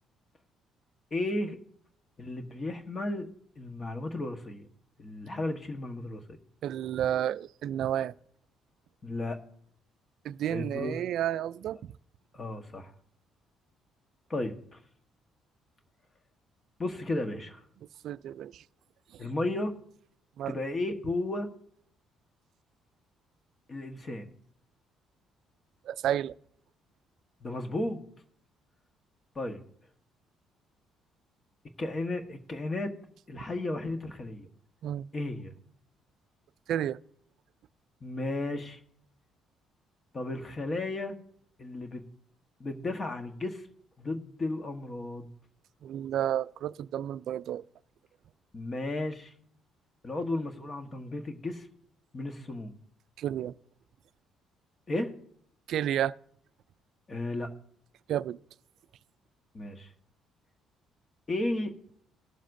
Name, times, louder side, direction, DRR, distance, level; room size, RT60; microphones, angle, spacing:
voice 1, 1.1-1.6 2.2-3.3 3.6-4.7 5.0-6.2 9.0-9.4 10.5-10.9 12.3-12.9 14.3-14.8 16.8-17.6 19.2-19.7 20.5-21.5 23.7-24.3 27.4-28.0 29.3-29.6 31.8-32.9 33.3-34.5 35.1-35.5 38.0-38.8 40.1-41.2 41.6-42.0 42.6-43.7 44.0-45.3 48.5-49.3 50.0-51.7 52.1-52.7 54.9-55.1 57.1-57.5 59.5-59.9 61.3-61.7, left 2 dB, 35° left, 1.2 m, -34 dB
voice 2, 6.6-8.1 10.2-11.9 18.0-18.6 19.1-19.3 20.4-20.6 25.8-26.3 34.8-35.1 36.7-37.0 45.8-47.6 53.2-53.5 55.7-56.1 58.1-58.4, right 11 dB, 70° right, 0.3 m, -31 dB
19.5 x 7.4 x 2.6 m
supercardioid pair, 80°, 0 cm